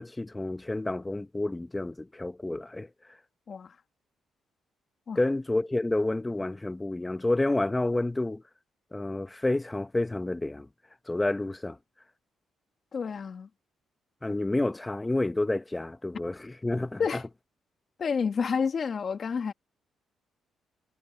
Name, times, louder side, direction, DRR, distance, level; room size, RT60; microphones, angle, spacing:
voice 1, 0.0-2.9 5.2-8.4 8.9-10.7 11.1-11.8 14.2-17.0, left 2 dB, 15° left, 1.1 m, -29 dB
voice 2, 12.9-13.5 17.0-17.2 18.0-19.5, left 6 dB, 45° left, 2.0 m, -29 dB
cardioid pair, 90°, 0 cm